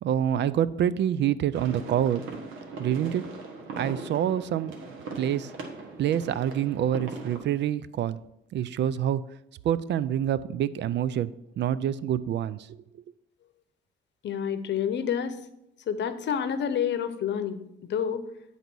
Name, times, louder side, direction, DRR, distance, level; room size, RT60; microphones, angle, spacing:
voice 1, 0.0-2.2 2.8-3.3 3.8-4.7 5.2-5.5 6.0-8.2 8.5-9.2 9.6-11.3 11.6-12.8, right 10 dB, 65° right, 17 dB, 0.4 m, -26 dB
sound 1, 1.5-7.4, right 3 dB, 85° right, 1.3 m, -40 dB
voice 2, 14.2-15.5 15.9-18.2, left 8 dB, 65° left, 11 dB, 0.8 m, -29 dB
9.2 x 4.0 x 6.1 m, 0.85 s
cardioid pair, 90°, 20 cm